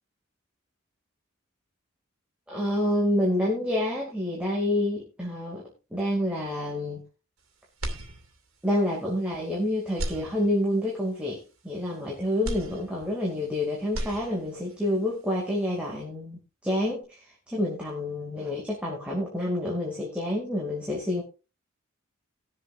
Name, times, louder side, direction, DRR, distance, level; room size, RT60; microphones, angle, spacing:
voice 1, 2.5-5.6 5.9-7.0 8.6-11.4 11.6-21.2, left 1 dB, 5° right, -4 dB, 2.5 m, -28 dB
sound 1, 7.8-8.7 9.1-9.2 9.9-10.9 12.4-13.5 13.8-14.7, right 1 dB, 85° right, 2.4 m, -36 dB
20.0 x 7.4 x 2.6 m, 0.30 s
head